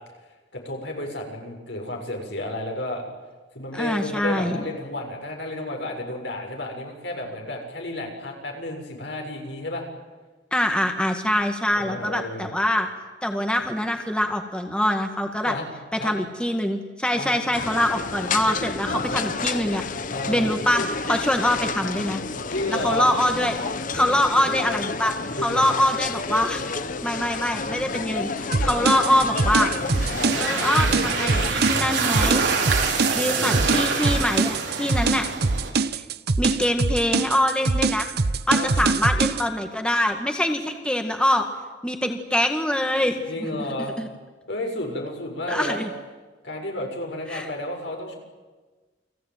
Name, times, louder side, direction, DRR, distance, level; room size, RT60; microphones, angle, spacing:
voice 1, 0.5-3.0 3.5-9.8 11.7-12.5 15.4-15.6 16.0-16.2 17.1-17.4 18.6-19.2 20.1-20.5 22.5-23.1 25.4-25.7 30.1-30.3 33.4-33.9 38.5-38.9 43.3-44.0 44.5-45.8 46.4-48.2, left 1 dB, 75° left, 1 dB, 6.9 m, -31 dB
voice 2, 3.7-4.6 10.5-12.9 13.2-15.6 15.9-19.8 20.3-22.2 22.7-23.6 23.9-25.1 25.4-26.6 27.0-29.7 30.4-32.5 33.1-35.3 36.0-36.1 36.4-38.1 38.5-41.5 41.8-43.2 44.0-44.1 45.5-45.9 47.3-47.5, left 1 dB, 5° left, 4 dB, 1.9 m, -24 dB
sound 1, 17.5-31.5, left 4 dB, 50° left, 1.1 m, -30 dB
sound 2, 28.5-39.4, right 3 dB, 60° right, 0.8 m, -23 dB
sound 3, 29.3-35.7, right 4 dB, 85° right, 5.1 m, -26 dB
29.5 x 21.0 x 9.3 m, 1.3 s
head